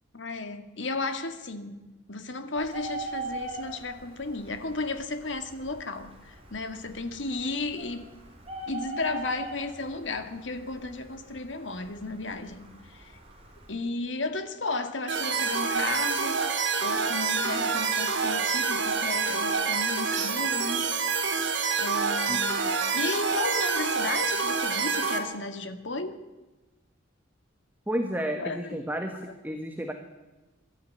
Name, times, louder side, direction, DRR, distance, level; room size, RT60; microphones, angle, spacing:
voice 1, 0.1-1.8 2.1-8.1 8.7-13.2 13.7-16.4 16.8-20.9 21.8-26.2 28.4-28.8, left 3 dB, 70° left, 8 dB, 2.2 m, -34 dB
Bird, 2.6-13.7, right 2 dB, 30° right, 4.7 m, -42 dB
sound 1, 15.1-25.2, right 5 dB, 65° right, 3.1 m, -27 dB
voice 2, 27.9-29.9, right 1 dB, 10° right, 5 dB, 1.5 m, -31 dB
22.5 x 13.5 x 9.8 m, 1.1 s
head